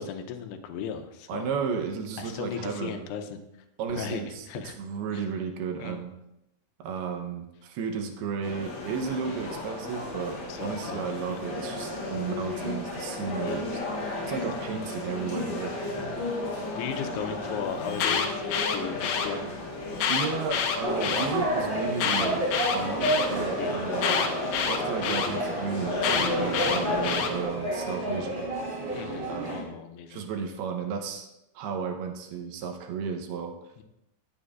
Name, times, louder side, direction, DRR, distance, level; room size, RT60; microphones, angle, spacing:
voice 1, 0.0-1.5 2.2-3.4 3.9-4.8 5.1-5.2 5.8-6.0 9.3-9.4 10.5-11.0 11.3-11.5 13.3-13.7 15.3-15.6 16.8-19.4 20.9-21.2 23.6-23.8 26.5-26.8 28.9-30.2 33.8-33.9, left 7 dB, 90° left, 7 dB, 2.9 m, -37 dB
voice 2, 1.3-3.1 3.8-6.1 6.8-13.8 14.3-16.1 17.1-17.3 20.1-22.4 22.7-24.4 24.6-28.5 29.3-29.8 30.1-31.3 31.6-33.6, right 6 dB, 75° right, 4 dB, 2.8 m, -33 dB
sound 1, 8.4-27.4, left 2 dB, 50° left, 3.9 m, -34 dB
Alarm, 17.8-19.3 19.9-21.3 21.9-23.3 24.0-25.3 26.0-27.3, left 7 dB, 75° left, 2.4 m, -27 dB
sound 2, 20.8-29.6, right 1 dB, 35° right, 0.7 m, -30 dB
17.5 x 7.3 x 2.5 m, 0.89 s
omnidirectional pair, 4.7 m